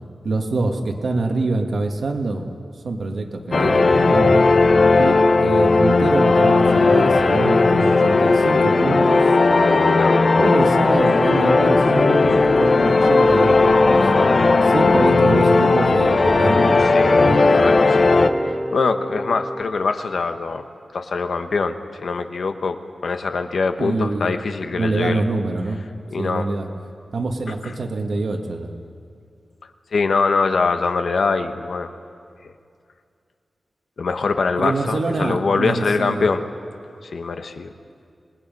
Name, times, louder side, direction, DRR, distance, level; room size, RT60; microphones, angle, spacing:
voice 1, 0.2-2.5 2.8-4.4 5.0-9.2 10.4-14.1 14.6-17.4 23.8-24.4 24.7-25.8 26.2-26.7 27.1-28.7 34.6-36.3, right 3 dB, 70° right, 3 dB, 1.8 m, -25 dB
sound 1, 3.5-18.3, left 3 dB, 50° left, 0.9 m, -16 dB
sound 2, 13.5-19.6, equal, ahead, 0.8 m, -31 dB
voice 2, 16.8-18.1 18.4-20.6 20.9-25.2 26.1-26.5 27.6-27.7 29.9-31.9 34.0-36.4 37.0-37.7, left 4 dB, 70° left, 7 dB, 1.1 m, -23 dB
26.5 x 19.5 x 5.4 m, 2.3 s
wide cardioid pair, 135°, 0 cm